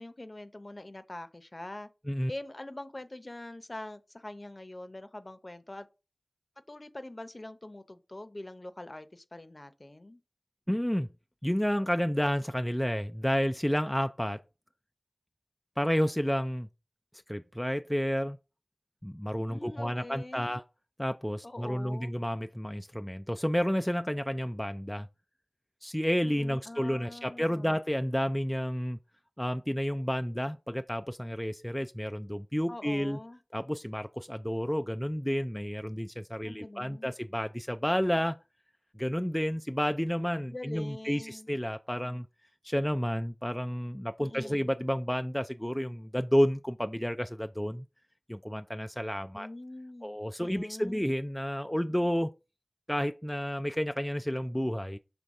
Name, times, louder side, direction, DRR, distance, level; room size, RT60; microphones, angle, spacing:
voice 1, 0.0-1.9 2.3-5.9 6.7-10.2 19.5-20.6 21.4-22.1 26.2-27.7 32.7-33.4 36.4-37.1 40.5-41.5 44.2-44.7 49.3-51.1, left 1 dB, 45° left, 0.7 m, -44 dB
voice 2, 10.7-11.1 11.4-14.4 15.8-16.7 17.3-18.4 19.0-20.6 21.0-25.1 25.8-29.0 29.4-33.2 33.5-38.4 39.0-42.3 42.6-47.8 48.3-49.5 50.0-52.3 52.9-55.0, equal, 10° left, 0.4 m, -30 dB
6.3 x 3.3 x 5.3 m
wide cardioid pair, 45°, 0 cm